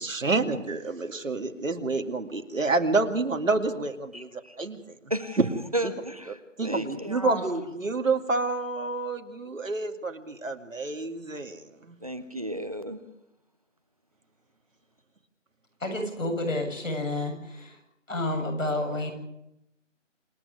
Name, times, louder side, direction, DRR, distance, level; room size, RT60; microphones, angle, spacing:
voice 1, 0.0-4.9 5.4-5.5 6.6-12.0, right 3 dB, 85° right, 6 dB, 2.5 m, -28 dB
voice 2, 4.1-4.6 5.1-5.4 5.7-7.6 12.0-13.0, right 1 dB, 30° right, 12 dB, 0.8 m, -33 dB
voice 3, 15.8-17.8 18.1-19.1, left 1 dB, 85° left, 4 dB, 7.4 m, -30 dB
27.5 x 11.5 x 9.6 m, 0.84 s
figure-of-eight pair, 170°, 38 cm